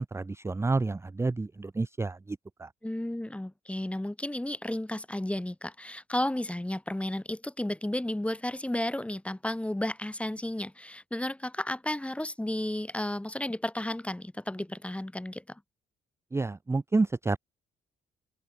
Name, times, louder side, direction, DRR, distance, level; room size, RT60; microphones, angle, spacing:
voice 1, 0.0-2.7 16.3-17.4, right 3 dB, 15° right, 0.5 m, -29 dB
voice 2, 2.8-15.6, left 1 dB, 5° left, 0.9 m, -33 dB
cardioid pair, 90°, 20 cm